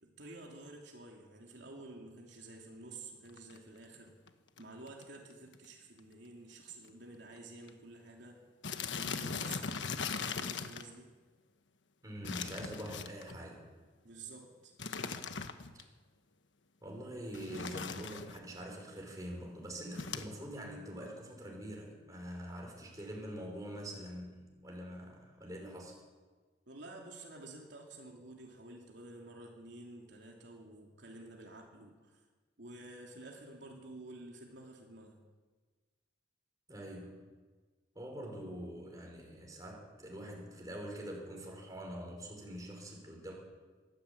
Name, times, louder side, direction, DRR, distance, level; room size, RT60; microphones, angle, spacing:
voice 1, 0.0-4.1 4.6-8.4 9.0-9.9 10.3-11.1 14.0-14.7 26.7-32.2 32.6-35.2, right 2 dB, 70° right, 0 dB, 3.1 m, -51 dB
sound 1, 3.3-3.6 4.3-4.4 4.6-4.7 4.9-5.2 5.5-5.7 6.0-6.1 6.8-6.9 7.1-7.4 7.7-7.8 8.6-10.9 12.2-13.4 14.8-15.8 17.3-18.4 20.0-20.3, left 5 dB, 75° left, 1.3 m, -39 dB
voice 2, 12.0-13.7 15.7-15.8 16.8-26.0 36.7-37.2 38.0-43.3, equal, 20° right, 0 dB, 5.3 m, -45 dB
22.5 x 14.0 x 8.7 m, 1.4 s
head